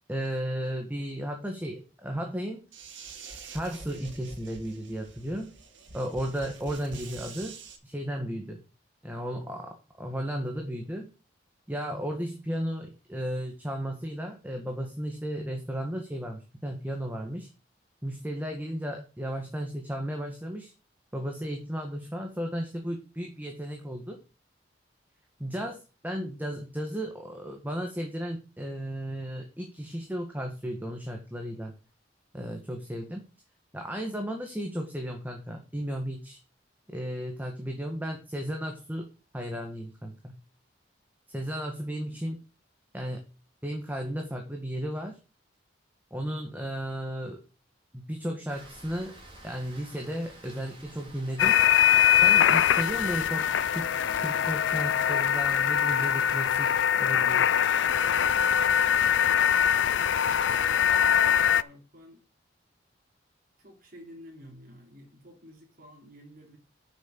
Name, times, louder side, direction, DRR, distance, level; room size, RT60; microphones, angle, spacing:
voice 1, 0.1-2.6 3.5-5.5 5.9-7.5 7.8-8.6 9.0-11.1 11.7-17.5 18.0-20.7 21.1-24.2 25.4-31.7 32.3-33.2 33.7-36.4 36.9-39.1 39.3-40.3 41.3-42.4 42.9-43.2 43.6-45.2 46.1-47.4 47.9-49.1 49.4-51.6 52.2-53.9 54.2-56.7 57.0-57.4, equal, 10° right, 2 dB, 1.6 m, -34 dB
sound 1, 2.7-7.8, right 4 dB, 85° right, 2.1 m, -46 dB
voice 2, 41.9-42.3 59.9-62.2 63.6-66.6, equal, 50° right, 2 dB, 3.3 m, -51 dB
Rain, 48.5-56.8, right 1 dB, 30° right, 3.2 m, -50 dB
sound 2, 51.4-61.6, left 9 dB, 75° left, 0.4 m, -23 dB
7.8 x 6.5 x 6.6 m, 0.33 s
head